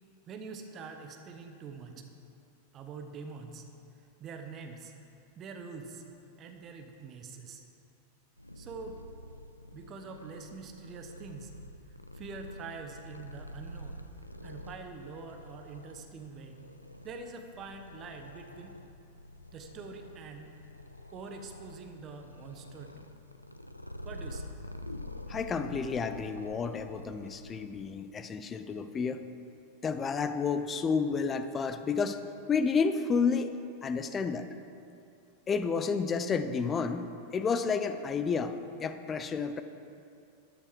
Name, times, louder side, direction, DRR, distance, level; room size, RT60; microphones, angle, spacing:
voice 1, 0.3-2.0 2.7-3.6 3.9-4.9 5.3-6.0 6.4-7.6 8.5-9.0 9.7-11.5 12.1-14.0 14.4-16.6 17.0-18.8 19.5-20.5 21.1-23.1 24.0-24.5, right 4 dB, 30° right, 5 dB, 1.3 m, -45 dB
Purr, 8.4-27.7, left 1 dB, 85° left, 0.5 m, -47 dB
voice 2, 25.3-29.2 29.8-32.2 32.5-33.5 33.8-34.5 35.5-39.6, left 5 dB, 20° left, 10 dB, 0.7 m, -30 dB
13.0 x 10.5 x 4.7 m, 2.6 s
figure-of-eight pair, 90°, 0 cm